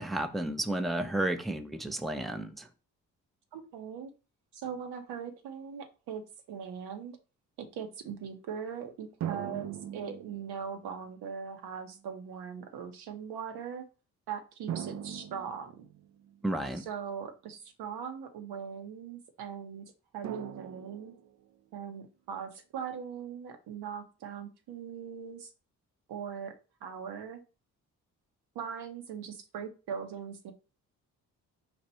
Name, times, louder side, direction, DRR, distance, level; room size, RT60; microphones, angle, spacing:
voice 1, 0.0-2.7 16.4-16.8, right 1 dB, ahead, 0.6 m, -32 dB
voice 2, 3.5-4.1 4.5-6.2 6.5-7.2 7.6-13.8 14.3-15.9 16.7-19.8 20.1-21.1 21.7-25.5 26.1-26.5 26.8-27.4 28.5-30.5, right 7 dB, 75° right, 1.1 m, -40 dB
sound 1, 9.2-10.9 11.9-12.0 14.7-16.4 20.2-21.5, right 9 dB, 45° right, 0.5 m, -40 dB
4.6 x 2.5 x 4.3 m
hypercardioid pair, 45°, 39 cm